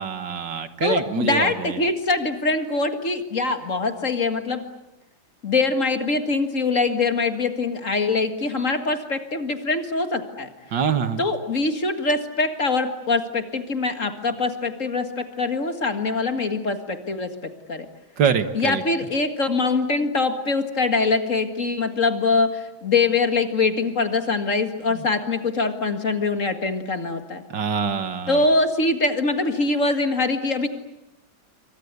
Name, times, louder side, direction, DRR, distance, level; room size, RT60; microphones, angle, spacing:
voice 1, 0.0-1.8 10.7-11.2 18.2-18.8 24.9-25.1 27.5-28.4, right 7 dB, 65° right, 11 dB, 2.1 m, -25 dB
voice 2, 0.8-4.6 5.4-10.5 11.2-17.9 18.5-27.4 28.3-30.7, left 3 dB, 40° left, 8 dB, 2.2 m, -23 dB
28.0 x 25.0 x 8.3 m, 0.90 s
omnidirectional pair, 2.1 m